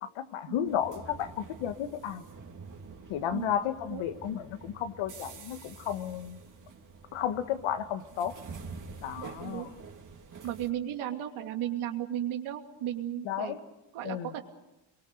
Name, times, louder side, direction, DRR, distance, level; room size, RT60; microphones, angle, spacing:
voice 1, 0.0-2.2 3.1-6.4 7.1-8.3 9.0-9.7 13.3-13.6 14.0-14.3, left 10 dB, 75° left, 9 dB, 1.8 m, -33 dB
sound 1, 0.6-10.7, right 4 dB, 40° right, 3.1 m, -47 dB
voice 2, 9.2-9.7 10.4-13.6 13.9-14.4, right 11 dB, 75° right, 4 dB, 2.8 m, -35 dB
27.5 x 23.0 x 6.7 m, 1.0 s
cardioid pair, 90°, 49 cm